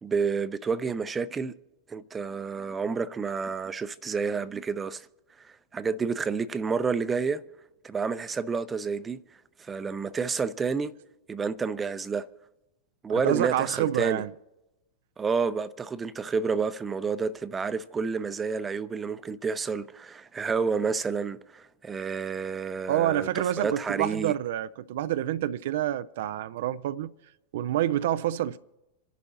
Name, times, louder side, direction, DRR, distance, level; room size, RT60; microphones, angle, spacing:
voice 1, 0.0-1.5 1.9-5.1 5.4-7.4 7.8-9.2 9.6-10.9 11.3-12.3 13.0-14.2 15.2-23.3 23.6-24.3, right 5 dB, 15° right, 0.6 m, -29 dB
voice 2, 13.1-14.3 22.9-27.1 27.5-28.6, right 12 dB, 55° right, 0.4 m, -28 dB
27.5 x 11.0 x 2.9 m
figure-of-eight pair, 90°, 0 cm